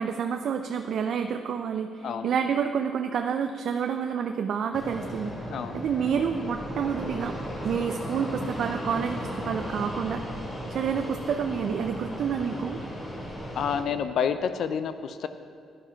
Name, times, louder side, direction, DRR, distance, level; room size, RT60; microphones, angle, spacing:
voice 1, 0.0-5.3 5.7-7.4 7.6-10.2 10.7-12.8, right 7 dB, 65° right, 6 dB, 0.5 m, -29 dB
Fixed-wing aircraft airplane, 4.7-13.8, equal, 25° left, 2.9 m, -36 dB
voice 2, 5.5-5.8 13.6-15.3, left 7 dB, 70° left, 10 dB, 0.5 m, -29 dB
10.5 x 9.9 x 5.8 m, 2.2 s
cardioid pair, 90°, 0 cm